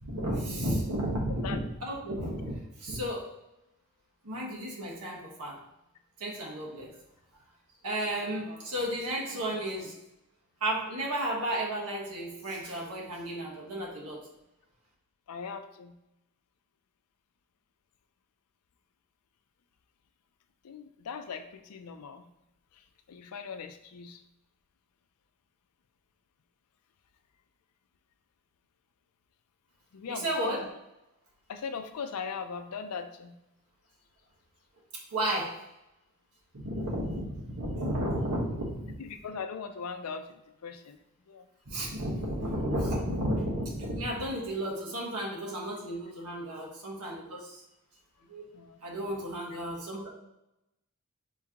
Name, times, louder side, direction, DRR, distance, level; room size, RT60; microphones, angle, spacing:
voice 1, 0.0-3.3 4.2-5.6 6.2-6.9 7.8-10.0 10.6-14.2 30.1-30.6 35.1-35.5 36.5-38.9 41.6-47.6 48.3-48.5 48.8-50.1, right 1 dB, 85° right, -3 dB, 1.3 m, -33 dB
voice 2, 15.3-15.9 20.6-22.3 23.1-24.2 29.9-30.7 31.5-33.3 39.0-41.0 41.3-41.4 48.5-48.8, left 5 dB, 75° left, 8 dB, 0.4 m, -40 dB
4.5 x 3.6 x 2.9 m, 0.89 s
head